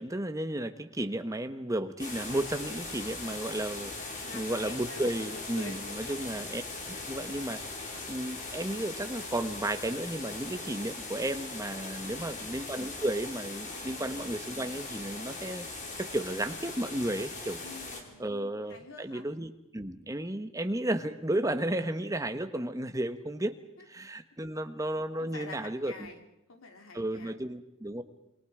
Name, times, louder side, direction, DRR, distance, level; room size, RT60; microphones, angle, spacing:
voice 1, 0.0-6.6 7.1-7.8 8.1-15.7 16.0-17.6 18.2-23.5 23.9-26.1 26.9-28.0, right 1 dB, 15° right, 9 dB, 1.1 m, -33 dB
sound 1, 2.0-18.0, left 3 dB, 40° left, 3.8 m, -40 dB
voice 2, 4.2-6.2 12.0-12.4 13.8-14.1 17.6-18.3 18.7-19.2 25.2-27.3, left 3 dB, 85° left, 5 dB, 3.1 m, -47 dB
27.0 x 23.5 x 5.0 m, 0.86 s
head